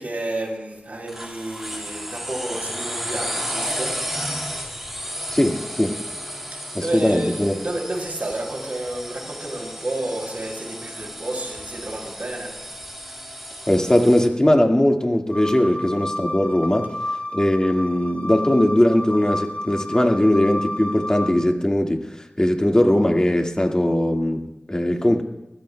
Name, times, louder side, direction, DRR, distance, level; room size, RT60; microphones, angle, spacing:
voice 1, 0.0-4.0 6.8-12.5, right 1 dB, 55° right, -1 dB, 5.6 m, -30 dB
sound 1, 1.1-14.3, equal, 5° right, 3.0 m, -33 dB
voice 2, 5.3-6.0 6.7-7.5 13.7-25.2, left 1 dB, 25° left, 3 dB, 1.8 m, -20 dB
sound 2, 15.3-21.3, left 1 dB, 50° left, 2.6 m, -31 dB
26.5 x 16.0 x 2.2 m, 0.95 s
cardioid pair, 45°, 3 cm